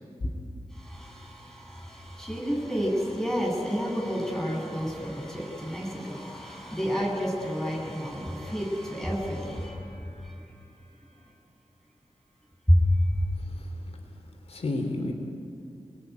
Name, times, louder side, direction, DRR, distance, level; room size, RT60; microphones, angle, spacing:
voice 1, 0.8-10.3 12.7-12.9 13.2-13.3, equal, 5° left, -2 dB, 7.8 m, -29 dB
voice 2, 13.3-15.1, left 2 dB, 75° left, 3 dB, 3.5 m, -33 dB
29.5 x 21.0 x 9.6 m, 2.5 s
wide cardioid pair, 100°, 11 cm